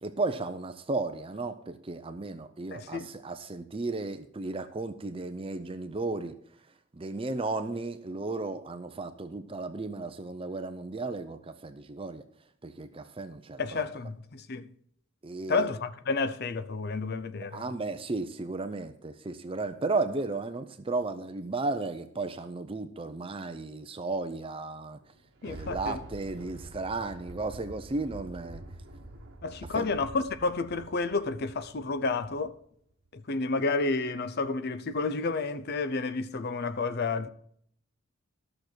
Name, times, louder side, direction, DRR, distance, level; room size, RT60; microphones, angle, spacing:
voice 1, 0.0-6.4 6.9-12.2 12.6-13.9 15.2-15.7 17.5-25.0 25.4-28.6 29.7-29.9, right 3 dB, 25° right, 0.5 m, -34 dB
voice 2, 2.7-3.1 13.6-14.7 15.5-17.6 25.4-26.0 29.4-32.6 33.1-37.3, left 3 dB, 45° left, 0.6 m, -30 dB
Thunder, 25.0-32.6 33.1-33.2, right 2 dB, 50° right, 1.1 m, -47 dB
13.0 x 6.5 x 4.4 m
head